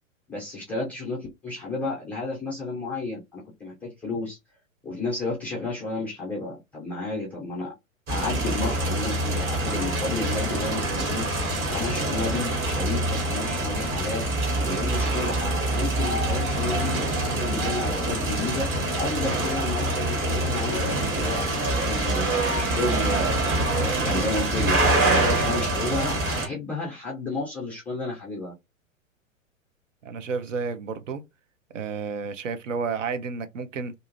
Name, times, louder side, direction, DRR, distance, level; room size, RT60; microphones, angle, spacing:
voice 1, 0.3-4.4 4.8-7.7 8.1-14.3 14.6-15.4 15.7-23.5 23.8-28.5, left 3 dB, 5° left, 0.3 m, -32 dB
sound 1, 8.1-26.5, right 2 dB, 25° right, 1.2 m, -25 dB
sound 2, 16.9-22.1, left 3 dB, 80° right, 1.6 m, -42 dB
voice 2, 30.0-31.2 31.7-33.9, right 5 dB, 65° right, 0.6 m, -31 dB
2.6 x 2.4 x 2.8 m
figure-of-eight pair, 105°, 41 cm